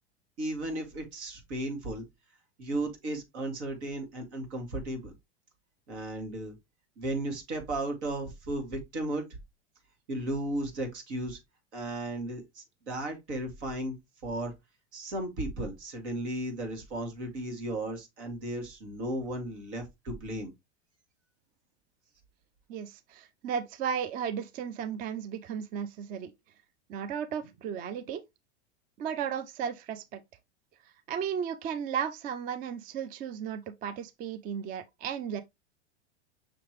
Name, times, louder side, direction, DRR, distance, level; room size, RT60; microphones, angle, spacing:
voice 1, 0.4-2.0 2.6-5.1 5.9-6.5 7.0-9.3 10.1-11.4 11.7-13.9 14.2-14.5 14.9-20.5, right 1 dB, 75° right, 2.0 m, -35 dB
voice 2, 22.7-26.3 26.9-28.2 29.0-30.2 31.1-35.4, right 8 dB, 25° right, 0.4 m, -34 dB
5.9 x 3.0 x 3.0 m
hypercardioid pair, 105°, 34 cm